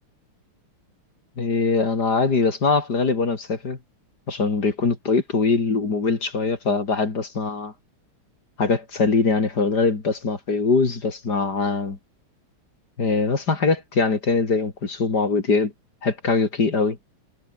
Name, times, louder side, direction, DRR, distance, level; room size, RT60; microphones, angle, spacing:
voice 1, 1.4-3.8 4.3-7.7 8.6-12.0 13.0-15.7 16.0-17.0, left 4 dB, 45° left, 3.6 m, -22 dB
omnidirectional pair, 2.4 m